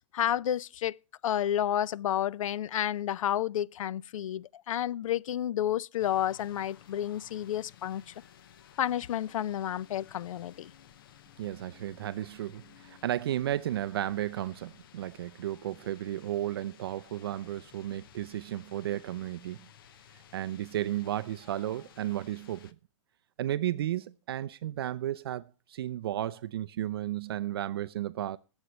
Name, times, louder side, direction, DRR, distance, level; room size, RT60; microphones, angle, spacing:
voice 1, 0.1-1.0 1.2-8.0 8.8-10.7, left 11 dB, 80° left, 0.4 m, -30 dB
sound 1, 6.0-22.7, left 10 dB, 45° left, 0.6 m, -56 dB
voice 2, 11.4-19.7 20.3-22.7 23.4-25.4 25.7-28.4, right 12 dB, 50° right, 0.5 m, -33 dB
sound 2, 15.5-16.0 16.8-17.4 19.9-20.4 21.4-22.1, right 4 dB, 10° left, 3.6 m, -66 dB
20.5 x 8.1 x 3.0 m
hypercardioid pair, 175°, 17 cm